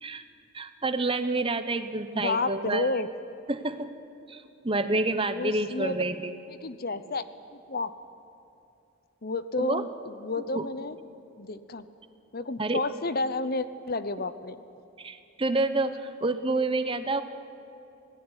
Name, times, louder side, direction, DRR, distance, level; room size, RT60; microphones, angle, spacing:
voice 1, 0.5-2.9 3.5-3.9 4.3-6.4 9.6-9.8 10.5-10.6 12.6-12.8 15.0-17.2, right 2 dB, 25° right, 10 dB, 0.9 m, -28 dB
voice 2, 2.1-3.1 5.3-6.0 6.5-7.2 7.5-7.9 9.2-11.0 11.4-11.9 12.3-14.6, left 3 dB, 45° left, 13 dB, 0.8 m, -31 dB
26.0 x 18.0 x 9.8 m, 2.8 s
head